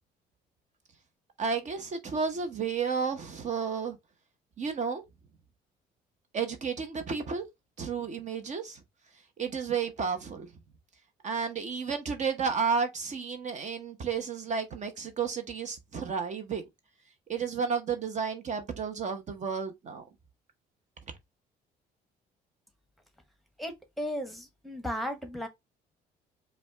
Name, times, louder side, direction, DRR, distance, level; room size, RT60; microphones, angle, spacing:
voice 1, 1.4-4.0 4.6-5.0 6.3-7.4 7.8-8.8 9.4-10.5 11.2-16.6 17.3-20.0, right 5 dB, 45° right, 0.9 m, -32 dB
voice 2, 23.6-25.5, equal, ahead, 1.1 m, -35 dB
5.0 x 2.4 x 3.4 m
cardioid pair, 110°, 17 cm